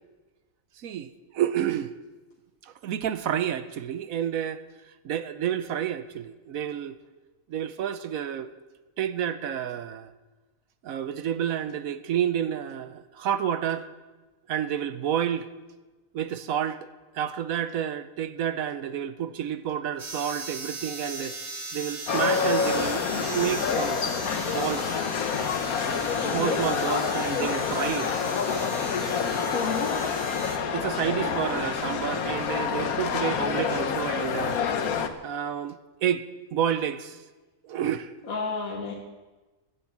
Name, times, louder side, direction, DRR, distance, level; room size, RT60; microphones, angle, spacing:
voice 1, 0.8-1.9 2.6-4.6 5.0-7.0 7.5-8.5 9.0-10.1 10.8-13.9 14.5-15.5 16.1-16.8 17.1-21.4 21.7-23.0 23.3-24.0 24.5-25.0 26.3-28.1 30.7-34.6 35.2-36.3 36.5-37.2 37.6-38.1, right 9 dB, 75° right, 12 dB, 1.1 m, -29 dB
sound 1, 20.0-30.6, right 2 dB, 20° right, 1.6 m, -38 dB
sound 2, 22.1-35.1, left 6 dB, 90° left, 1.4 m, -27 dB
voice 2, 26.2-26.6 29.5-29.9 38.2-38.9, left 4 dB, 75° left, 0 dB, 1.8 m, -30 dB
15.0 x 9.9 x 7.4 m, 1.2 s
omnidirectional pair, 1.5 m